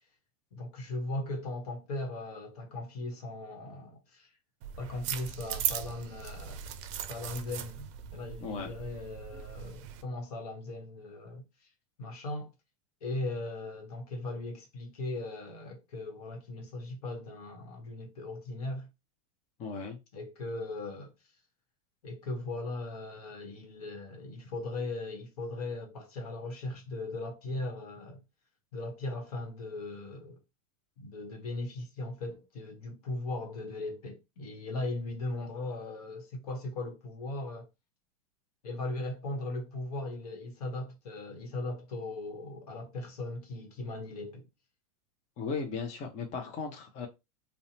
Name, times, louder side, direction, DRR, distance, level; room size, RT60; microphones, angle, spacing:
voice 1, 0.5-4.3 4.8-6.6 7.1-11.7 12.0-12.5 13.0-18.9 20.1-21.1 22.0-28.2 28.7-30.4 31.0-37.7 38.6-44.5, left 2 dB, 75° left, 1.0 m, -38 dB
sound 1, 4.6-10.0, right 9 dB, 50° right, 0.4 m, -38 dB
voice 2, 8.4-8.7 19.6-20.0 45.4-47.1, left 5 dB, 35° left, 0.6 m, -36 dB
2.7 x 2.1 x 2.7 m
hypercardioid pair, 100°, 19 cm